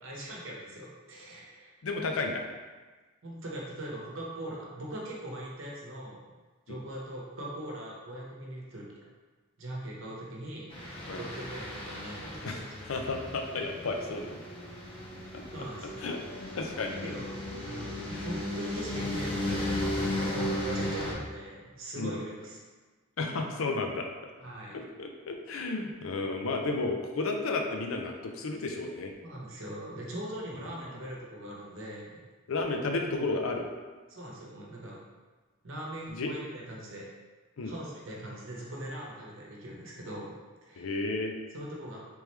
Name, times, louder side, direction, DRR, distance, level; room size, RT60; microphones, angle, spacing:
voice 1, 0.0-1.7 3.2-6.2 6.7-8.9 9.6-12.6 15.5-16.0 17.0-17.3 17.7-22.6 24.4-24.8 29.2-32.1 34.1-35.0 35.6-37.1 37.6-40.3 40.6-40.9 41.5-42.0, right 1 dB, 70° right, -3 dB, 0.9 m, -41 dB
voice 2, 1.8-2.4 6.7-6.8 11.1-11.2 12.4-12.6 12.9-14.4 15.3-15.4 16.0-16.2 16.6-17.1 18.1-18.3 20.2-20.4 22.0-22.2 23.2-24.1 24.7-29.1 30.9-31.0 32.5-33.7 36.1-36.3 37.6-37.7 40.8-41.3, left 3 dB, 85° left, 3 dB, 0.5 m, -32 dB
sound 1, 10.7-21.1, left 1 dB, 25° left, 0.6 m, -35 dB
3.5 x 3.1 x 3.2 m, 1.3 s
head